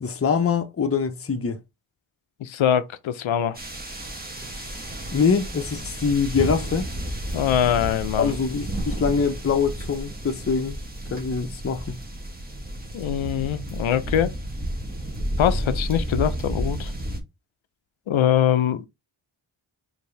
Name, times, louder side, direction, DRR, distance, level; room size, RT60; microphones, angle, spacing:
voice 1, 0.0-1.6 4.5-4.7 5.1-6.9 8.2-10.8 11.1-12.0, left 5 dB, 30° left, 0.7 m, -24 dB
voice 2, 2.4-3.6 7.3-8.3 12.9-14.3 15.4-16.9 18.1-18.9, left 10 dB, 80° left, 0.6 m, -23 dB
sound 1, 3.5-17.2, right 1 dB, 20° right, 1.2 m, -31 dB
4.4 x 2.7 x 3.2 m
cardioid pair, 70°, 47 cm